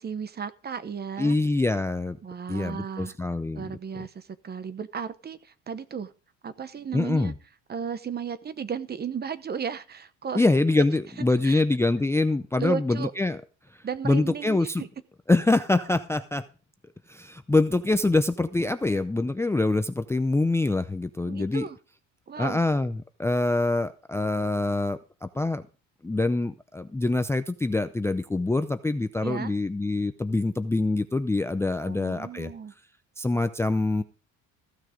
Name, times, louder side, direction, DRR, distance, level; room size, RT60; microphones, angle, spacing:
voice 1, 0.0-1.4 2.2-3.1 3.5-6.1 6.4-7.3 7.7-10.4 10.8-10.9 11.4-11.6 12.6-13.1 13.8-14.9 21.3-21.8 22.3-22.6 29.2-29.5 31.8-32.7, right 6 dB, 30° right, 15 dB, 0.9 m, -34 dB
voice 2, 1.2-2.2 2.5-3.6 6.9-7.3 10.3-13.4 14.0-14.8 15.3-16.4 17.1-21.7 22.4-25.6 26.0-32.5 33.2-34.0, left 2 dB, 10° left, 12 dB, 0.5 m, -25 dB
15.0 x 6.4 x 5.0 m, 0.36 s
cardioid pair, 110°, 34 cm